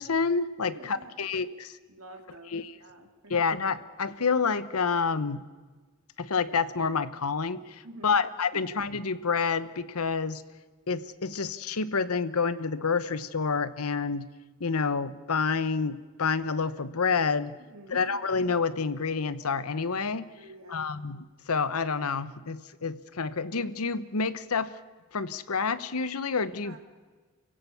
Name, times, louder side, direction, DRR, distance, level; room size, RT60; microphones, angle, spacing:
voice 1, 0.0-1.7 2.5-2.7 3.3-5.4 6.2-10.4 10.9-14.3 14.6-17.6 17.9-20.3 20.7-24.7 25.1-26.8, left 5 dB, 85° left, 15 dB, 0.9 m, -28 dB
voice 2, 0.6-1.3 1.9-3.3 7.8-8.2 8.5-8.6 17.7-18.0 20.4-20.9 26.6-26.8, right 1 dB, 75° right, 3 dB, 2.5 m, -48 dB
29.0 x 16.5 x 7.0 m, 1.4 s
head